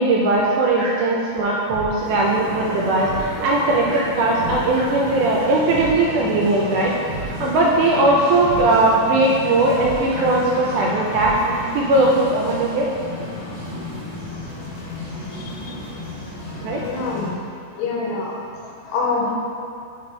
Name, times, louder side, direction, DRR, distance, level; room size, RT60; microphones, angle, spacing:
voice 1, 0.0-3.1 3.4-6.9 7.3-11.3 11.7-12.9 16.6-16.8, right 2 dB, 80° right, -2 dB, 1.9 m, -19 dB
sound 1, 1.4-11.7, right 3 dB, 55° right, 1.8 m, -34 dB
sound 2, 1.9-17.3, left 2 dB, 45° left, 1.5 m, -33 dB
voice 2, 15.3-15.8 16.8-17.4 17.7-19.3, left 3 dB, 75° left, -2 dB, 2.3 m, -26 dB
5.7 x 5.2 x 4.3 m, 2.4 s
omnidirectional pair, 4.1 m